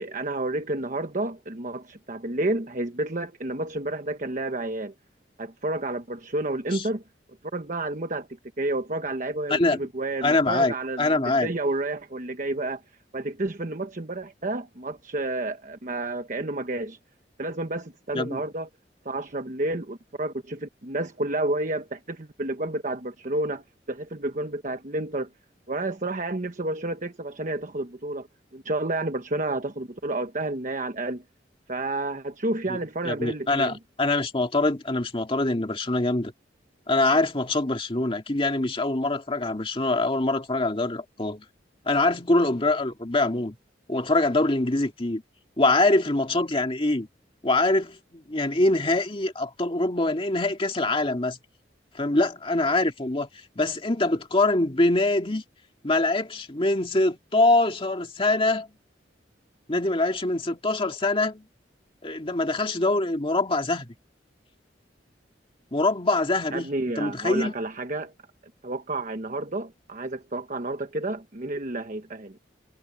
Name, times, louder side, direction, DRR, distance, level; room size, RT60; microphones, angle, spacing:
voice 1, 0.0-4.9 5.4-7.0 7.5-8.3 8.6-12.8 13.1-17.0 17.4-18.7 19.0-25.3 25.7-28.3 28.5-31.2 31.7-33.8 66.5-68.1 68.6-72.4, right 2 dB, 45° right, 1.1 m, -30 dB
voice 2, 9.5-9.9 10.2-11.5 18.1-18.4 32.7-32.8 33.0-36.3 36.9-41.4 41.9-43.6 43.9-45.2 45.6-47.1 47.4-51.4 51.9-53.3 53.6-55.4 55.8-58.7 59.7-61.4 62.0-63.9 65.7-67.5, left 2 dB, 30° left, 2.1 m, -24 dB
head